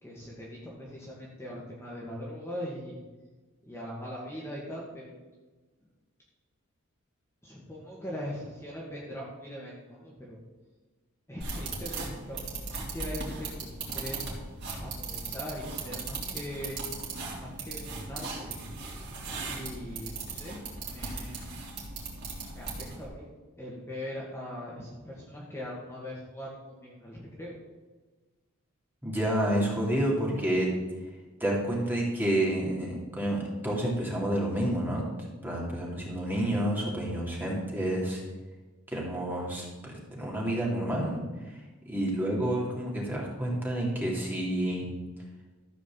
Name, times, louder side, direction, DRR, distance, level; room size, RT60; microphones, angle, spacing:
voice 1, 0.0-3.0 3.6-5.2 7.4-10.4 11.3-14.2 14.8-16.8 17.4-18.5 19.5-20.6 20.9-21.5 22.5-23.3 23.6-27.6, equal, 10° left, -5 dB, 2.0 m, -41 dB
sound 1, 11.4-23.1, right 3 dB, 50° right, 3.4 m, -38 dB
voice 2, 29.0-30.7 31.4-35.0 35.4-38.2 38.9-41.6 41.9-44.8, right 1 dB, 10° right, -3 dB, 2.7 m, -29 dB
14.0 x 5.1 x 7.3 m, 1.2 s
head